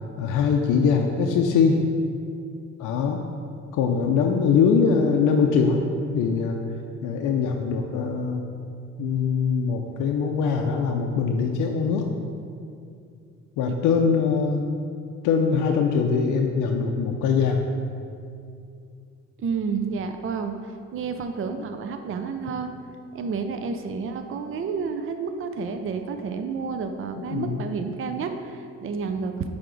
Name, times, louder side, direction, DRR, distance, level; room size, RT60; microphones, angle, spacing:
voice 1, 0.2-1.8 2.8-3.2 3.7-5.8 6.1-6.6 7.0-8.4 9.0-12.1 13.6-14.6 15.2-17.6 27.2-27.7, left 5 dB, 90° left, 2 dB, 0.5 m, -22 dB
voice 2, 19.4-22.7 23.1-29.5, right 5 dB, 45° right, 7 dB, 0.5 m, -30 dB
8.9 x 3.5 x 3.9 m, 2.4 s
cardioid pair, 90°, 30 cm